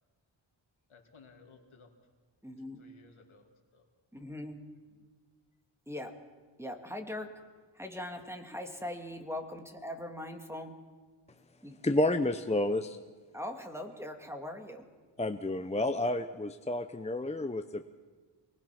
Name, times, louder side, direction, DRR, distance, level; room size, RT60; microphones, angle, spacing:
voice 1, 0.9-1.9 2.6-3.9 8.1-8.3, left 4 dB, 75° left, 3 dB, 2.6 m, -59 dB
voice 2, 2.4-2.9 4.1-4.6 5.9-6.1 6.6-7.3 7.7-10.8 11.6-11.8 13.3-14.9, left 1 dB, 5° right, 4 dB, 2.2 m, -41 dB
voice 3, 11.8-13.0 15.2-17.9, left 1 dB, 15° left, 8 dB, 0.7 m, -30 dB
24.5 x 19.5 x 6.0 m, 1.4 s
wide cardioid pair, 85°, 48 cm